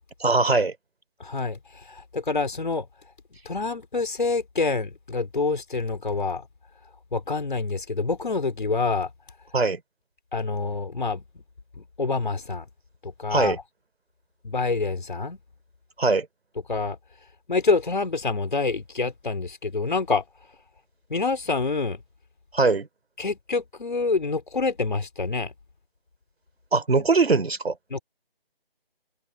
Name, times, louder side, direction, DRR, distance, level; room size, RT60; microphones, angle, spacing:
voice 1, 0.2-0.7 9.5-9.8 13.3-13.6 16.0-16.3 22.5-22.9 26.7-27.7, right 3 dB, 85° right, 3.3 m, -21 dB
voice 2, 1.2-2.9 3.4-6.5 7.1-9.1 10.3-11.4 11.7-12.7 13.0-13.6 14.4-15.4 16.7-17.0 17.5-20.2 21.1-22.0 23.2-25.5 27.9-28.0, left 4 dB, 55° left, 4.2 m, -27 dB
figure-of-eight pair, 175°, 30 cm